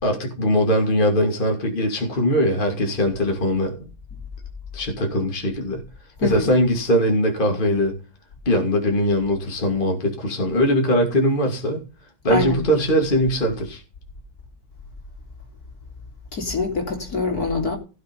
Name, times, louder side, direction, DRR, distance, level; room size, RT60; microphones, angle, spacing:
voice 1, 0.0-3.9 4.7-5.8 6.2-7.9 8.5-11.8 12.2-13.8, equal, 25° left, 2.7 m, -21 dB
voice 2, 6.2-6.5 12.3-12.6 16.3-17.8, left 4 dB, 55° left, 3.8 m, -24 dB
16.0 x 7.4 x 5.5 m
omnidirectional pair, 2.0 m